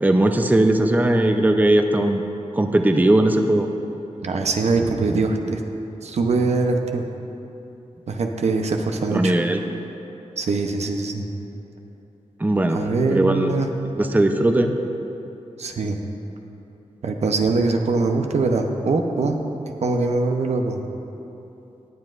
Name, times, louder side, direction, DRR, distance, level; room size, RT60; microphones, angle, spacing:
voice 1, 0.0-2.2 2.5-3.7 9.1-9.6 12.4-12.8 13.1-13.6 14.0-14.7, right 1 dB, 15° right, 5 dB, 0.5 m, -18 dB
voice 2, 4.2-5.6 6.0-7.0 8.1-9.3 10.4-11.3 12.7-13.7 15.6-16.0 17.0-19.4 19.8-20.8, right 3 dB, 75° right, 4 dB, 0.7 m, -22 dB
18.5 x 7.7 x 2.5 m, 3.0 s
wide cardioid pair, 75°, 11 cm